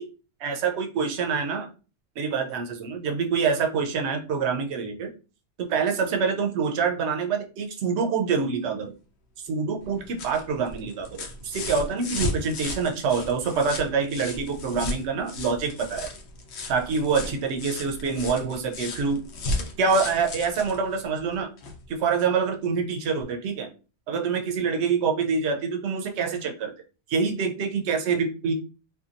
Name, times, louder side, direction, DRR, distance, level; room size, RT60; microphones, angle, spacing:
voice 1, 0.4-1.7 2.2-5.1 5.6-8.9 9.4-16.1 16.7-19.2 19.8-21.5 21.9-23.7 24.1-26.7 27.1-28.5, right 5 dB, 80° right, 2 dB, 0.9 m, -26 dB
sound 1, 9.8-21.8 23.2-23.3, left 2 dB, 75° left, 0.8 m, -35 dB
2.7 x 2.3 x 2.4 m, 0.35 s
omnidirectional pair, 1.1 m